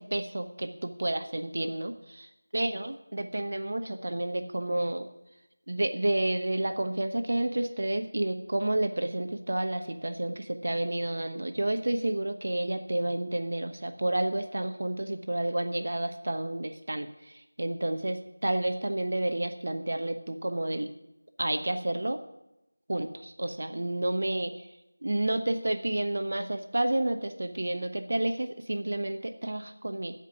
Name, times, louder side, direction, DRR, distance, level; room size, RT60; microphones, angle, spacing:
voice 1, 0.0-5.1 5.7-20.9 21.4-22.2 22.9-24.5 25.0-30.1, right 1 dB, 55° right, 7 dB, 1.0 m, -30 dB
15.5 x 5.3 x 9.5 m, 0.90 s
figure-of-eight pair, 175°, 0 cm